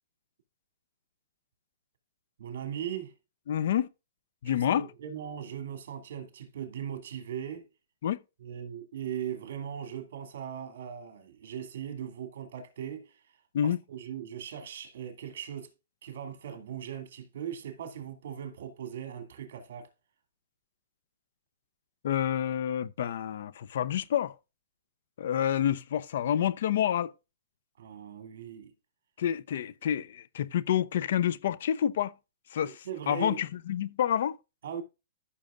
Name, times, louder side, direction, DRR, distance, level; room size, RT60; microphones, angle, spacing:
voice 1, 2.4-3.1 4.5-7.7 8.4-13.1 13.6-15.7 16.0-19.9 27.8-28.7 32.5-33.4 34.6-34.8, right 9 dB, 65° right, 2.5 m, -39 dB
voice 2, 3.5-3.9 4.4-4.9 8.0-8.2 13.5-13.8 22.0-24.3 25.2-27.1 29.2-32.1 32.5-34.4, left 10 dB, 65° left, 0.7 m, -28 dB
14.0 x 6.4 x 2.5 m
hypercardioid pair, 150°, 0 cm